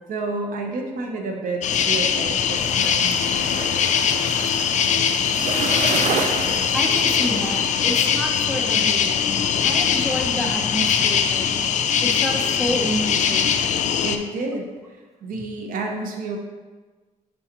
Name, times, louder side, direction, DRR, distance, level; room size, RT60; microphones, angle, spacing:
voice 1, 0.1-3.3 14.0-14.7 15.2-16.4, right 3 dB, 85° right, 2 dB, 0.9 m, -29 dB
sound 1, 1.6-14.2, left 8 dB, 60° left, 0.4 m, -21 dB
sound 2, 2.6-7.7, right 5 dB, 60° right, 0.5 m, -30 dB
voice 2, 6.7-9.4 9.6-11.6 12.0-13.4, equal, ahead, 0 dB, 0.8 m, -29 dB
8.8 x 3.9 x 3.0 m, 1.3 s
cardioid pair, 130°, 14 cm